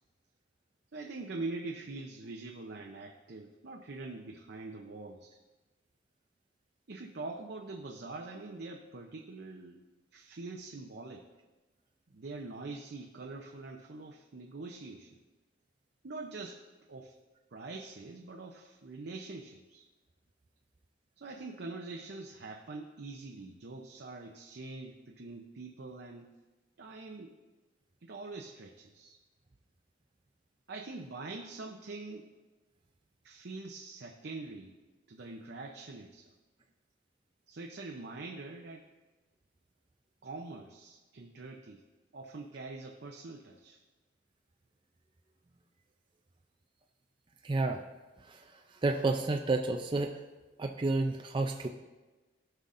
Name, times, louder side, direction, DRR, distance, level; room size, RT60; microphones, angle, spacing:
voice 1, 0.9-5.4 6.9-9.8 10.1-11.3 12.1-15.2 16.0-16.6 16.9-17.1 17.5-19.8 21.2-26.3 26.8-27.3 28.0-29.2 30.7-32.3 33.2-34.8 35.1-36.3 37.5-38.9 40.2-41.8 42.1-43.8, right 3 dB, 60° right, 1 dB, 0.7 m, -44 dB
voice 2, 47.4-47.8 48.3-48.4 48.8-50.1 50.6-51.7, right 3 dB, 25° right, 2 dB, 0.4 m, -30 dB
16.5 x 5.6 x 2.6 m, 1.2 s
head